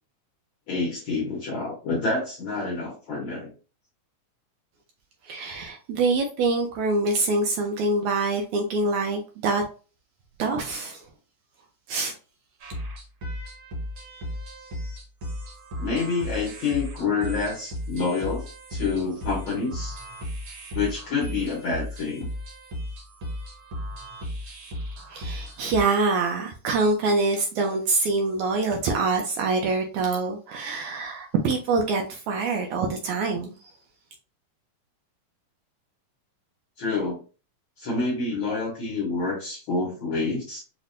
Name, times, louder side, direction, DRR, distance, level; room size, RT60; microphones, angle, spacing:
voice 1, 0.7-3.5 15.8-20.0 20.7-22.3 36.8-37.2 37.8-40.6, left 4 dB, 90° left, -3 dB, 1.1 m, -28 dB
voice 2, 5.2-9.6 10.4-11.0 11.9-12.1 25.1-33.6, right 3 dB, 80° right, 3 dB, 1.7 m, -25 dB
sound 1, 12.6-25.8, equal, 60° right, 1.3 m, -35 dB
5.7 x 2.1 x 2.5 m, 0.35 s
omnidirectional pair, 3.7 m